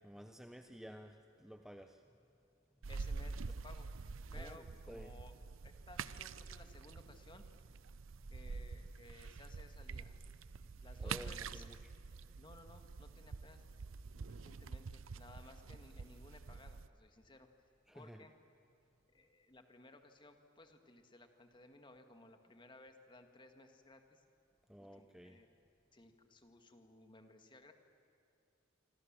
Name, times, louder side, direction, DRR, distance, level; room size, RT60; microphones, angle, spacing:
voice 1, 0.0-2.0 4.3-5.1 11.0-11.9 17.9-18.2 24.7-25.4, equal, 5° right, 6 dB, 0.7 m, -53 dB
sound 1, 2.8-16.9, right 4 dB, 80° right, 0.6 m, -47 dB
voice 2, 2.9-3.9 4.3-5.3 5.6-7.4 8.3-10.2 10.8-11.7 12.4-13.6 14.1-17.5 17.9-18.3 19.1-24.2 24.8-25.5 25.9-27.7, left 2 dB, 25° left, 6 dB, 1.7 m, -59 dB
26.5 x 26.0 x 7.5 m, 2.7 s
head